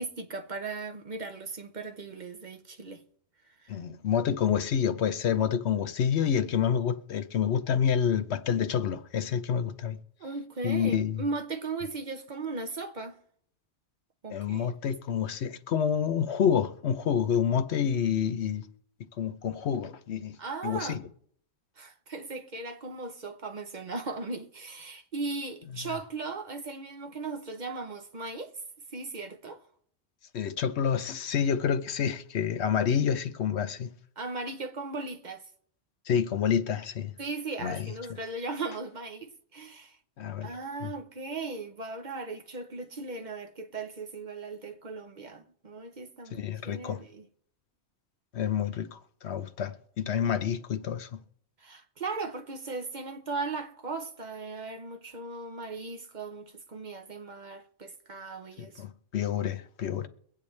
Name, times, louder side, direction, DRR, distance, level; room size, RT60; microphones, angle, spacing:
voice 1, 0.0-3.0 3.4-3.8 10.2-13.2 14.2-14.9 20.4-21.0 21.8-28.6 28.9-29.6 34.2-35.5 37.2-40.0 40.4-47.3 51.6-58.8, right 3 dB, 45° right, 0.9 m, -37 dB
voice 2, 3.7-10.0 10.6-11.2 14.3-18.7 19.2-20.4 20.6-21.0 30.3-33.9 36.1-37.1 37.6-37.9 40.2-40.5 40.8-40.9 46.4-47.0 48.3-51.2 58.6-60.1, left 8 dB, 75° left, 1.0 m, -28 dB
23.0 x 8.7 x 3.2 m
omnidirectional pair, 1.1 m